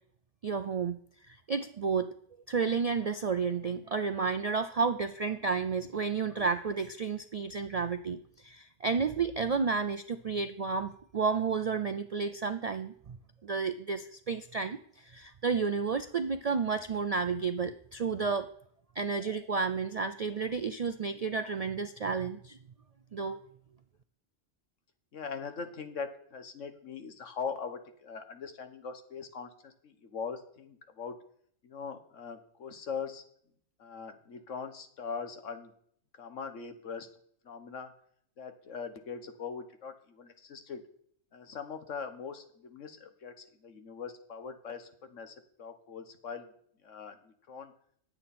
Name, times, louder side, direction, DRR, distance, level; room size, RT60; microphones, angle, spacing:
voice 1, 0.4-1.0 1.3-2.1 2.5-13.2 13.4-18.5 19.0-22.6 23.1-23.4, right 5 dB, 60° right, 10 dB, 0.4 m, -31 dB
voice 2, 25.1-31.1 31.6-33.2 33.8-35.7 36.1-37.1 37.4-37.9 38.4-40.8 41.3-46.5 46.8-47.7, left 6 dB, 80° left, 8 dB, 1.6 m, -41 dB
18.5 x 8.1 x 4.3 m, 0.64 s
omnidirectional pair, 1.3 m